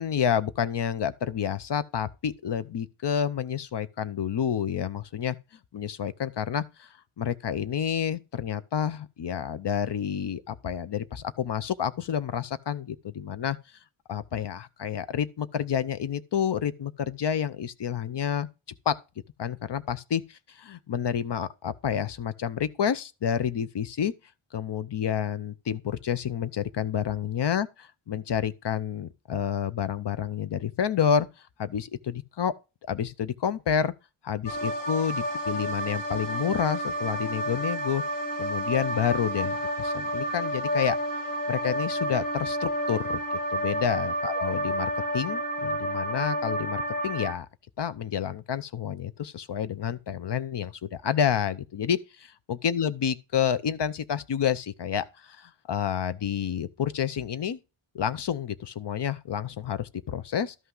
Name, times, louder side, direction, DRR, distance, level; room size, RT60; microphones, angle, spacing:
voice 1, 0.0-5.4 5.7-6.9 7.2-13.6 14.1-18.5 18.9-19.0 19.4-24.1 24.5-27.7 28.1-31.3 31.6-32.5 32.9-33.9 34.2-38.0 38.4-41.0 41.5-47.5 47.8-57.6 57.9-60.5, left 8 dB, 55° left, 0.7 m, -29 dB
sound 1, 34.5-47.3, equal, 40° left, 1.6 m, -30 dB
12.5 x 5.6 x 3.8 m
wide cardioid pair, 135°, 50 cm